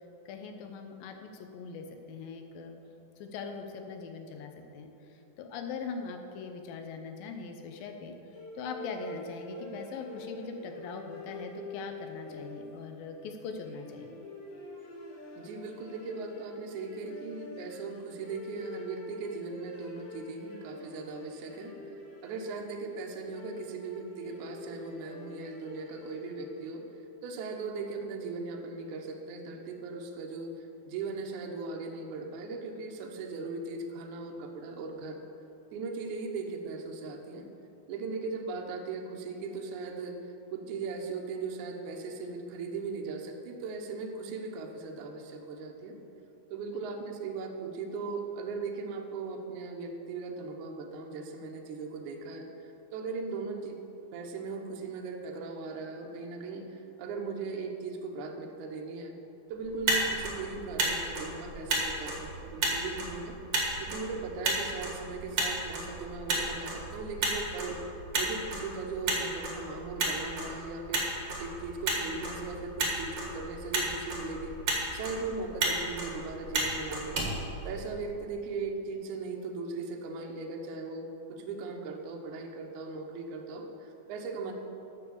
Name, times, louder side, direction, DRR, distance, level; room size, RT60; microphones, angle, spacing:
voice 1, 0.3-8.2 8.6-14.1 46.7-46.8, left 5 dB, 80° left, 5 dB, 2.1 m, -41 dB
sound 1, 8.3-26.8, left 1 dB, 65° left, 4.2 m, -46 dB
voice 2, 15.4-21.7 22.2-26.8 27.2-35.2 35.7-37.5 37.9-40.2 40.5-46.0 46.5-52.5 52.9-53.8 54.1-59.1 59.5-63.3 63.8-67.8 68.1-71.0 71.4-74.5 74.9-77.3 77.6-84.5, right 4 dB, 80° right, 2 dB, 1.7 m, -38 dB
Motor vehicle (road), 59.6-78.2, right 2 dB, 55° right, 1.2 m, -33 dB
9.0 x 7.2 x 7.0 m, 2.9 s
omnidirectional pair, 4.9 m